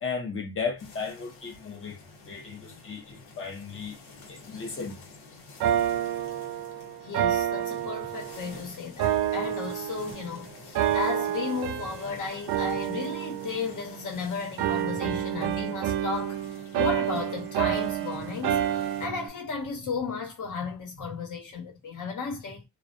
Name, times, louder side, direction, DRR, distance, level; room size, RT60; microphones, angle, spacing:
voice 1, 0.0-2.0 2.3-4.0 4.3-5.0, left 5 dB, 30° left, 0.8 m, -35 dB
sound 1, 0.8-19.1, left 3 dB, 90° left, 1.3 m, -49 dB
sound 2, 5.6-8.5 9.0-10.3 10.8-12.1 12.5-14.2 14.6-19.3, right 11 dB, 70° right, 0.6 m, -29 dB
voice 2, 7.0-16.4 16.8-22.6, left 5 dB, 50° left, 1.1 m, -34 dB
2.4 x 2.1 x 2.5 m
cardioid pair, 135°, 40 cm